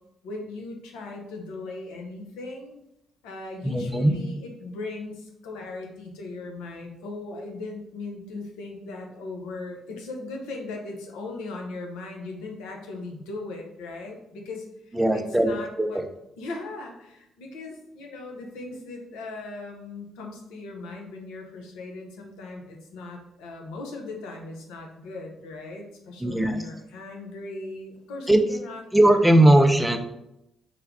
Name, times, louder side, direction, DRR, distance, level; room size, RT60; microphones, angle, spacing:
voice 1, 0.2-2.7 3.2-16.0 16.4-28.8, left 2 dB, 80° left, 1 dB, 0.7 m, -38 dB
voice 2, 3.6-4.2 14.9-15.9 26.2-26.6 28.3-28.4 28.9-30.0, right 1 dB, 10° right, 5 dB, 0.5 m, -19 dB
3.5 x 2.2 x 3.5 m, 0.83 s
hypercardioid pair, 50°, 0 cm